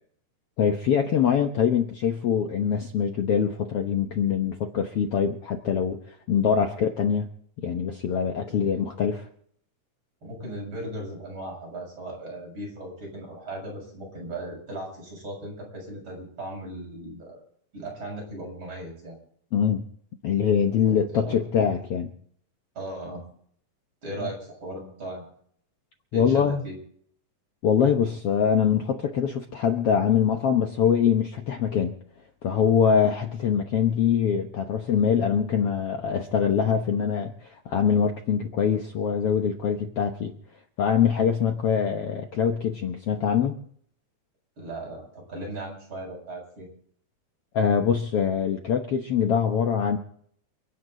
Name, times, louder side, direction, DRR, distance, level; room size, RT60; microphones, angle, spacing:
voice 1, 0.6-6.0 6.3-7.3 7.6-9.3 19.5-19.8 20.2-22.1 24.2-24.3 26.1-26.6 27.6-32.0 32.4-40.3 40.8-43.6 47.5-50.0, left 7 dB, 60° left, 4 dB, 1.8 m, -23 dB
voice 2, 8.4-8.8 10.2-17.4 17.7-19.2 20.8-21.4 22.7-23.2 24.0-25.3 26.1-26.7 44.6-46.6, right 1 dB, 40° right, -2 dB, 7.9 m, -37 dB
29.0 x 9.8 x 3.9 m, 0.62 s
omnidirectional pair, 3.6 m